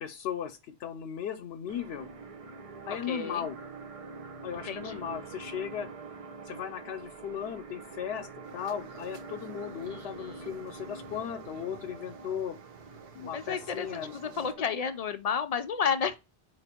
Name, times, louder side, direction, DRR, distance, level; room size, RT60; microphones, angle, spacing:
voice 1, 0.0-2.1 2.9-3.6 4.4-5.9 6.4-8.3 8.5-12.6 13.1-14.5, left 8 dB, 80° left, 0.8 m, -37 dB
sound 1, 1.7-15.0, right 4 dB, 45° right, 0.5 m, -45 dB
voice 2, 2.9-3.5 4.5-5.0 9.8-10.6 13.3-16.1, left 6 dB, 50° left, 0.5 m, -32 dB
sound 2, 8.4-14.5, right 7 dB, 70° right, 0.9 m, -54 dB
4.5 x 2.6 x 4.1 m
omnidirectional pair, 1.0 m